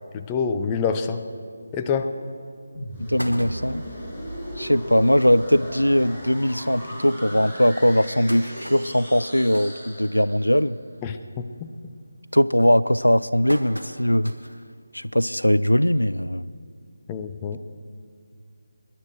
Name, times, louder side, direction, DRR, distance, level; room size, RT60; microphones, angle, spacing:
voice 1, 0.1-1.2 1.7-2.1 11.0-11.7 17.1-17.6, left 6 dB, 15° left, 6 dB, 0.6 m, -26 dB
sound 1, 2.1-2.2 2.6-2.7 2.9-4.0 4.6-4.7 4.9-5.0 5.4-5.5 6.3-6.4 6.9-7.0 7.7-10.6 10.9-11.3 11.6-12.0 12.6-14.6 15.1-15.2 16.4-16.5, equal, 90° right, 1.5 m, -39 dB
sound 2, 2.8-10.6, equal, 5° right, 3.3 m, -37 dB
voice 2, 3.0-3.8 4.6-10.8 12.3-14.3 14.9-16.4, equal, 85° left, 16 dB, 0.4 m, -20 dB
23.5 x 11.0 x 4.5 m, 2.3 s
figure-of-eight pair, 155°, 0 cm